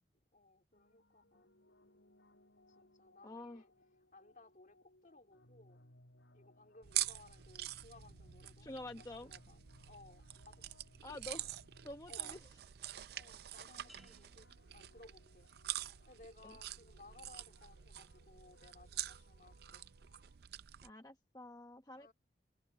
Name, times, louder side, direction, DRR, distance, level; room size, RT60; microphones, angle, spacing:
voice 1, 0.3-1.5 2.8-3.7 4.1-5.8 6.3-10.6 11.2-11.3 12.1-12.4 13.1-15.5 16.1-19.8 21.9-22.1, left 2 dB, 45° left, 2.4 m, -61 dB
sound 1, 0.7-20.4, left 1 dB, 85° left, 6.0 m, -66 dB
voice 2, 3.2-3.6 8.6-9.3 11.0-11.5 11.8-12.4 16.4-16.6 20.8-22.1, left 1 dB, 20° left, 1.0 m, -48 dB
sound 2, 6.8-20.9, right 14 dB, 60° right, 0.4 m, -46 dB
sound 3, 13.9-15.7 16.2-16.6, equal, ahead, 2.1 m, -68 dB
head